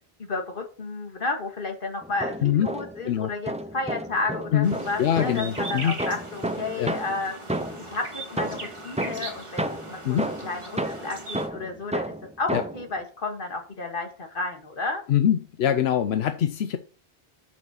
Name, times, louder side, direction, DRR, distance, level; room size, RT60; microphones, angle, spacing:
voice 1, 0.2-7.3 7.8-15.0, left 3 dB, 60° left, 2.0 m, -32 dB
sound 1, 2.0-3.1 3.5-8.0 8.4-12.9, right 1 dB, 10° right, 0.4 m, -32 dB
voice 2, 4.5-6.0 6.7-6.9 10.0-10.3 12.5-12.6 15.1-16.8, left 10 dB, 85° left, 0.9 m, -23 dB
sound 2, 4.6-11.5, right 2 dB, 30° right, 1.6 m, -39 dB
6.5 x 6.0 x 6.3 m
omnidirectional pair, 1.0 m